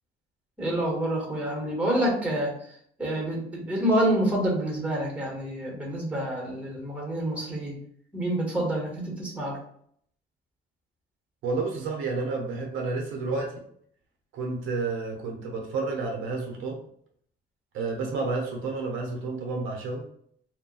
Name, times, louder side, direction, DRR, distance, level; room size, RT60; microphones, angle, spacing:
voice 1, 0.6-7.8 8.1-9.6, right 1 dB, 5° right, -2 dB, 1.2 m, -28 dB
voice 2, 11.4-13.6 14.3-16.8 17.7-20.0, right 3 dB, 90° right, 1 dB, 0.7 m, -30 dB
2.3 x 2.2 x 3.8 m, 0.65 s
cardioid pair, 100°, 20 cm